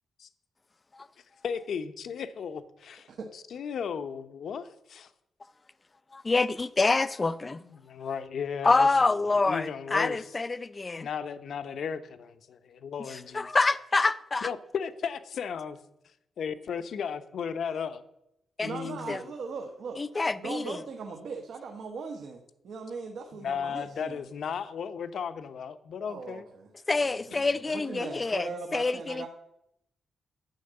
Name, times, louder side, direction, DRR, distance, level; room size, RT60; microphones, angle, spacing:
voice 1, 1.4-5.1 7.5-9.2 9.4-10.3 11.0-13.5 14.4-15.8 16.4-18.0 18.6-19.2 23.3-26.4, left 7 dB, 65° left, 0.8 m, -35 dB
voice 2, 6.1-7.6 8.6-11.1 13.3-14.5 18.6-18.7 19.1-19.2 20.0-20.8 26.9-29.3, left 3 dB, 25° left, 0.5 m, -26 dB
voice 3, 18.6-20.0 20.3-24.2 26.0-26.7 27.0-29.3, right 4 dB, 65° right, 1.2 m, -39 dB
10.5 x 6.3 x 8.7 m
wide cardioid pair, 140°, 0 cm